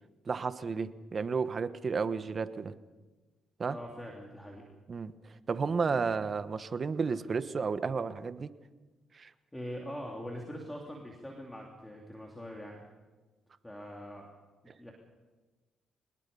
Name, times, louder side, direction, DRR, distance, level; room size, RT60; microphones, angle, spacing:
voice 1, 0.3-2.7 3.6-3.8 4.9-5.1 5.5-8.5 9.1-9.3, right 5 dB, 40° right, 12 dB, 1.1 m, -32 dB
voice 2, 3.7-4.6 9.5-12.8 13.6-14.3 14.6-14.9, equal, 10° left, -1 dB, 3.2 m, -43 dB
24.0 x 20.5 x 5.5 m, 1.2 s
cardioid pair, 90°, 0 cm